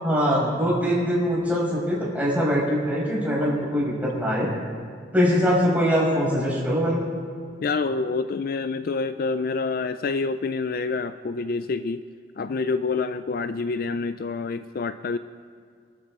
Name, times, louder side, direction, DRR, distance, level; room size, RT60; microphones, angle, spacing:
voice 1, 0.0-4.5 5.1-7.0, equal, 10° right, -6 dB, 5.4 m, -22 dB
voice 2, 7.6-12.0 12.4-15.2, left 4 dB, 50° left, 11 dB, 0.4 m, -27 dB
27.0 x 13.0 x 3.7 m, 2.2 s
head